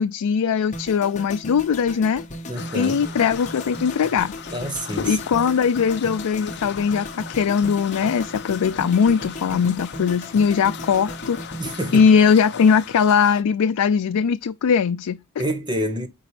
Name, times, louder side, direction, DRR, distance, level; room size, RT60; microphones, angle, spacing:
voice 1, 0.0-2.2 2.7-4.3 5.0-11.4 11.9-15.2, left 6 dB, 90° left, 0.4 m, -20 dB
sound 1, 0.7-12.9 13.2-13.5, left 1 dB, 35° left, 1.2 m, -37 dB
sound 2, 2.5-13.4, left 6 dB, 50° left, 0.6 m, -38 dB
voice 2, 2.5-3.0 4.5-5.2 11.6-12.1 15.4-16.1, right 1 dB, 20° right, 1.1 m, -27 dB
8.9 x 4.3 x 3.3 m
head